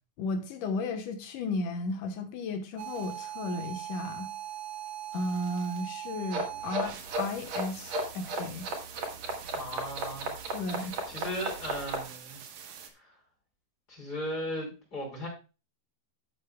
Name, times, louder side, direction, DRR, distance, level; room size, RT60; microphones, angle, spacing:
voice 1, 0.2-4.3 5.1-8.7 10.5-11.0, left 2 dB, 70° left, 2.6 m, -34 dB
sound 1, 2.8-12.9, right 11 dB, 80° right, 3.0 m, -42 dB
sound 2, 6.3-12.0, right 2 dB, 55° right, 3.3 m, -34 dB
voice 2, 9.5-10.3 11.1-12.4 12.9-13.1 13.9-15.3, equal, 25° left, 5.3 m, -37 dB
13.0 x 8.3 x 2.3 m
omnidirectional pair, 4.0 m